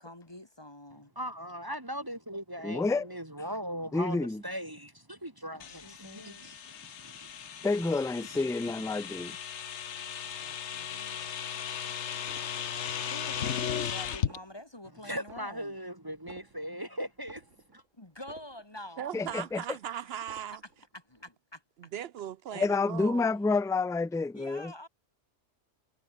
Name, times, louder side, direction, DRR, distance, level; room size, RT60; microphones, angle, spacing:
voice 1, 0.0-1.1 5.5-7.4 9.9-10.2 10.4-11.3 13.1-15.8 17.9-19.2 20.0-20.4 20.9-21.6 24.4-24.9, left 1 dB, 20° left, 1.8 m, -48 dB
voice 2, 1.1-8.0 8.9-9.4 15.0-17.4 17.7-17.8, equal, 20° right, 1.6 m, -40 dB
voice 3, 2.6-3.1 3.9-4.4 7.6-9.3 13.8-13.9 19.1-19.6 22.5-24.7, left 3 dB, 5° left, 0.3 m, -29 dB
sound 1, 5.6-14.4, left 8 dB, 70° left, 1.3 m, -36 dB
sound 2, 12.3-12.9 13.2-13.8 14.1-14.9 15.2-15.9 16.1-18.9 19.2-19.9 20.1-20.9 21.2-21.3, right 4 dB, 85° right, 3.0 m, -54 dB
voice 4, 19.0-20.6 21.8-23.3, right 10 dB, 65° right, 0.7 m, -38 dB
omnidirectional pair, 1.3 m